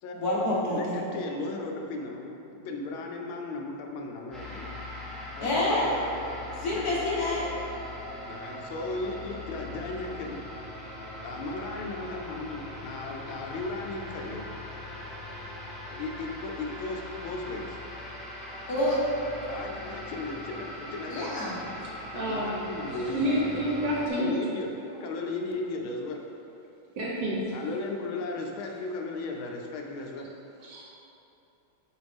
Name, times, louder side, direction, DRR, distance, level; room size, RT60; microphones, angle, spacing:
voice 1, 0.1-1.0 5.4-5.9 6.6-7.5 18.7-19.0 21.1-21.6, left 1 dB, 50° left, -7 dB, 1.6 m, -27 dB
voice 2, 0.7-4.8 5.4-5.9 6.7-7.0 8.3-10.4 11.2-14.5 15.9-17.8 18.6-18.7 19.5-21.3 22.1-23.8 24.1-24.7 25.0-26.2 27.5-30.3, left 3 dB, 80° left, 1 dB, 1.4 m, -36 dB
sound 1, 4.3-24.1, left 1 dB, ahead, 0.4 m, -41 dB
voice 3, 22.1-22.5 23.1-24.3 27.0-27.4 30.6-30.8, equal, 65° right, -3 dB, 1.3 m, -28 dB
7.9 x 4.5 x 3.5 m, 2.8 s
omnidirectional pair, 2.3 m